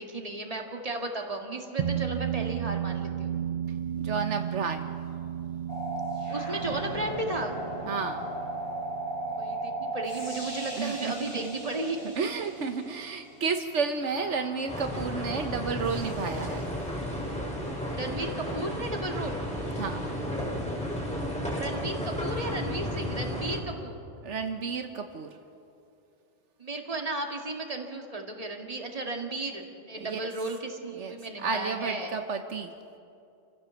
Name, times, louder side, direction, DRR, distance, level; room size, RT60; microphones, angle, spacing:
voice 1, 0.0-3.4 6.3-7.6 9.2-12.0 17.9-19.4 21.5-24.0 26.6-32.1, right 2 dB, 30° right, 2 dB, 2.1 m, -34 dB
sound 1, 1.8-12.5, right 10 dB, 50° right, 0.9 m, -35 dB
voice 2, 4.0-5.0 7.9-8.3 10.8-11.6 12.1-16.6 19.8-20.0 24.2-25.3 30.0-30.2 31.0-32.7, right 5 dB, 80° right, 6 dB, 1.3 m, -32 dB
sound 2, 5.7-13.3 14.0-17.0 19.7-20.1, right 2 dB, 65° left, 6.7 m, -37 dB
sound 3, 14.7-23.6, equal, 5° left, 4.1 m, -33 dB
28.0 x 15.5 x 7.0 m, 2.6 s
omnidirectional pair, 1.2 m